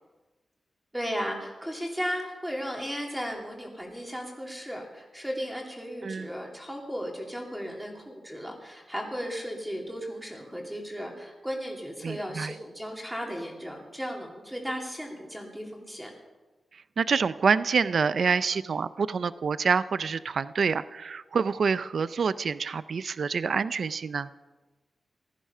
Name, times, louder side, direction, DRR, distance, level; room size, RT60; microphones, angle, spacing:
voice 1, 0.9-16.1, equal, 5° right, 0 dB, 2.6 m, -35 dB
voice 2, 12.0-12.5 17.0-24.3, right 5 dB, 60° right, 15 dB, 0.4 m, -27 dB
16.5 x 13.5 x 5.5 m, 1.2 s
wide cardioid pair, 175°, 0 cm